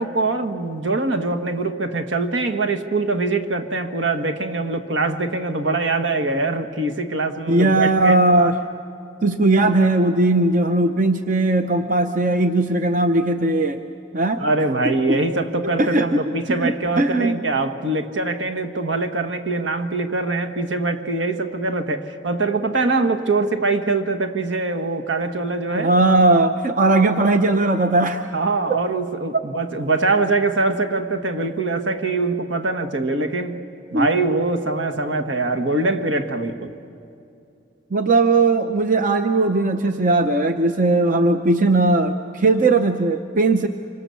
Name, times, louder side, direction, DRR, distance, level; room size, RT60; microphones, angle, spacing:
voice 1, 0.0-8.2 14.4-25.9 28.3-33.6 33.9-36.7, right 3 dB, 70° right, 6 dB, 1.5 m, -23 dB
voice 2, 7.5-8.5 9.2-13.8 14.1-14.4 15.1-15.2 15.6-16.3 16.6-17.4 25.7-28.3 28.7-28.8 29.3-29.4 33.9-34.1 37.9-43.7, right 2 dB, 40° right, 7 dB, 0.7 m, -18 dB
26.5 x 25.0 x 7.0 m, 2.6 s
head